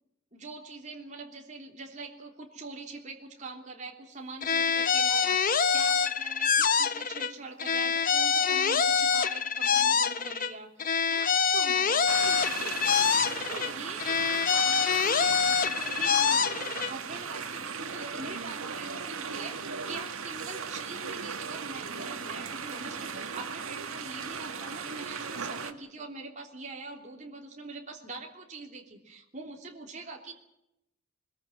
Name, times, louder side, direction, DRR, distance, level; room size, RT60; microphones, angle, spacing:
voice 1, 0.3-30.3, right 3 dB, 35° right, 0 dB, 3.3 m, -43 dB
sound 1, 4.4-7.3 7.6-10.5 10.8-13.7 14.0-16.9, left 6 dB, 40° left, 1.0 m, -25 dB
sound 2, 12.1-25.7, right 5 dB, 85° right, 2.0 m, -37 dB
23.0 x 21.0 x 7.8 m, 0.83 s
head